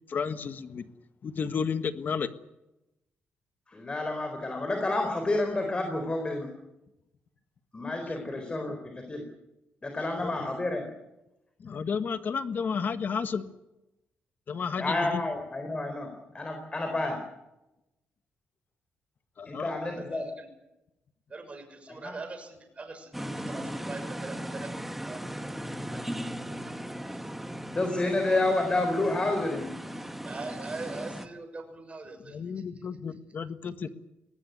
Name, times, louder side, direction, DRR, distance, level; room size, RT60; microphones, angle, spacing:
voice 1, 0.1-0.9 1.2-2.3 8.1-8.2 10.2-10.5 11.6-13.5 14.5-15.2 19.4-20.0 32.2-33.9, left 6 dB, 50° left, 10 dB, 1.6 m, -32 dB
voice 2, 3.7-6.5 7.7-9.2 9.8-10.9 14.8-17.2 19.5-20.3 22.0-22.1 27.7-29.7, left 2 dB, 25° left, 5 dB, 4.2 m, -29 dB
voice 3, 19.7-20.5 21.3-25.3 25.9-27.2 30.0-32.4, right 3 dB, 30° right, 6 dB, 6.5 m, -42 dB
sound 1, 23.1-31.3, equal, 5° right, 1.9 m, -37 dB
22.5 x 19.5 x 8.2 m, 0.94 s
cardioid pair, 110°, 4 cm